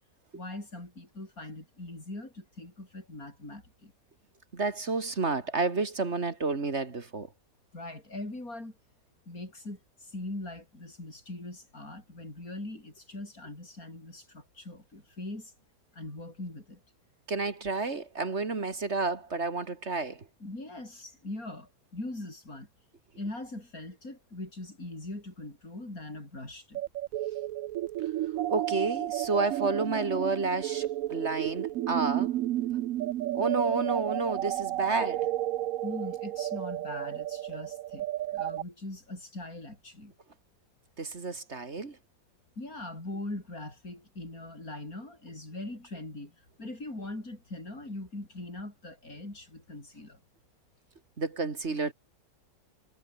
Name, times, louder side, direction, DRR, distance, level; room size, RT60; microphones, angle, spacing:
voice 1, 0.3-3.9 7.7-8.7 9.3-15.5 15.9-16.8 20.4-22.7 23.2-26.8 35.8-38.1 38.3-40.1 42.6-50.2, left 2 dB, 75° left, 7.6 m, -41 dB
voice 2, 4.5-7.3 17.3-20.3 28.5-32.3 33.3-35.3 41.0-42.0 51.2-51.9, right 3 dB, 50° right, 2.4 m, -30 dB
sound 1, 26.7-38.6, right 14 dB, 75° right, 1.0 m, -32 dB
omnidirectional pair, 1.5 m